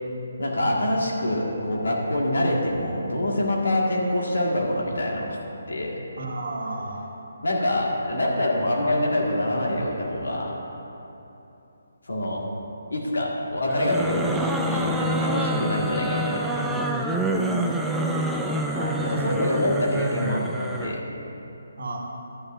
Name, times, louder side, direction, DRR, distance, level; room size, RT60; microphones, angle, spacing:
voice 1, 0.4-5.4 5.7-6.0 7.4-10.5 12.0-12.5 12.9-16.7 18.7-21.1, left 1 dB, 85° left, -1 dB, 1.8 m, -25 dB
voice 2, 6.2-7.1 17.0-17.6 21.8-22.0, right 2 dB, 65° right, 1 dB, 1.4 m, -32 dB
sound 1, 13.7-21.0, right 1 dB, 5° right, 0.3 m, -27 dB
12.0 x 9.7 x 2.6 m, 3.0 s
hypercardioid pair, 165°, 0 cm